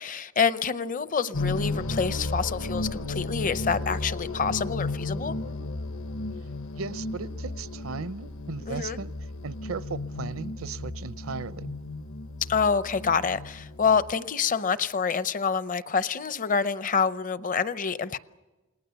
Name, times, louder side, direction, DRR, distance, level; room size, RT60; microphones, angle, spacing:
voice 1, 0.0-5.3 8.6-9.0 12.5-18.2, left 5 dB, 40° left, 0.7 m, -27 dB
sound 1, 1.3-14.1, left 2 dB, 65° left, 1.1 m, -34 dB
voice 2, 6.8-9.1 9.4-11.7, right 4 dB, 75° right, 0.7 m, -36 dB
28.5 x 19.5 x 7.0 m
head